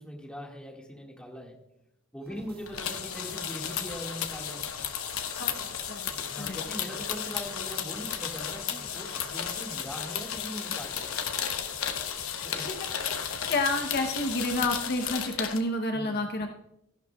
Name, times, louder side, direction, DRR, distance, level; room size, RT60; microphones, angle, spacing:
voice 1, 0.0-1.5 2.1-4.7 6.2-11.2 12.4-12.7 15.9-16.2, equal, 5° left, -1 dB, 1.8 m, -41 dB
sound 1, 2.2-9.5 9.9-10.0 10.3-10.5 10.8-10.9 11.2-14.8, right 1 dB, 45° right, 1.5 m, -52 dB
sound 2, 2.7-15.6, left 8 dB, 85° left, 0.9 m, -34 dB
voice 2, 5.4-6.1 6.4-6.6 12.5-12.9 13.5-16.5, left 2 dB, 50° left, 4 dB, 0.8 m, -30 dB
15.0 x 11.0 x 2.3 m, 0.83 s
head